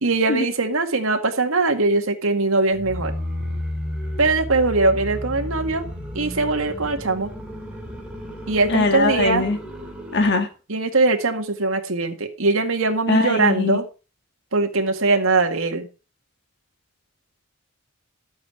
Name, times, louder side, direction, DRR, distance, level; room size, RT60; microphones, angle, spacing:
voice 1, 0.0-3.1 4.2-5.9 6.1-7.3 8.5-9.5 10.7-13.8 14.5-15.9, right 3 dB, 85° right, 5 dB, 2.0 m, -21 dB
sound 1, 2.7-10.4, equal, 5° right, 2.9 m, -32 dB
voice 2, 8.7-9.6 10.1-10.5 13.1-13.8, left 2 dB, 55° left, 7 dB, 1.9 m, -20 dB
12.5 x 8.7 x 4.6 m, 0.32 s
head